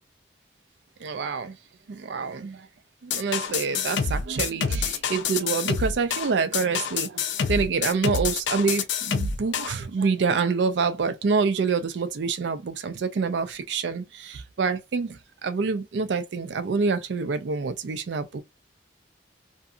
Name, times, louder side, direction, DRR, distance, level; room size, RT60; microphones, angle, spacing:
voice 1, 1.0-1.5 1.9-2.6 3.1-7.2 7.5-15.1 15.4-18.4, right 5 dB, 75° right, 0.4 m, -26 dB
sound 1, 3.1-9.7, left 6 dB, 80° left, 0.4 m, -27 dB
2.6 x 2.6 x 2.3 m
head